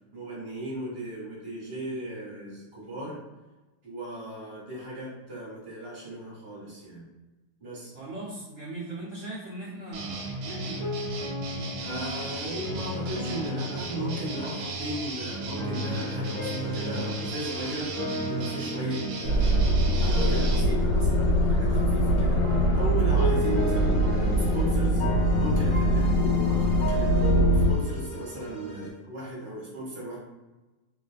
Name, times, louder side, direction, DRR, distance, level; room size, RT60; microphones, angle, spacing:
voice 1, 0.1-3.2 3.8-7.0 7.6-7.9 11.8-17.9 18.3-19.6 20.0-25.0 25.4-30.2, right 1 dB, 35° right, -6 dB, 0.9 m, -36 dB
voice 2, 7.9-10.9, right 2 dB, 65° right, -9 dB, 0.7 m, -39 dB
sound 1, 9.9-20.6, right 2 dB, 85° right, 1.5 m, -35 dB
sound 2, 10.4-15.0 15.5-28.9, equal, 50° left, 0.3 m, -35 dB
sound 3, 19.2-27.7, equal, 75° left, 1.2 m, -23 dB
3.1 x 3.0 x 2.4 m, 1.1 s
omnidirectional pair, 2.3 m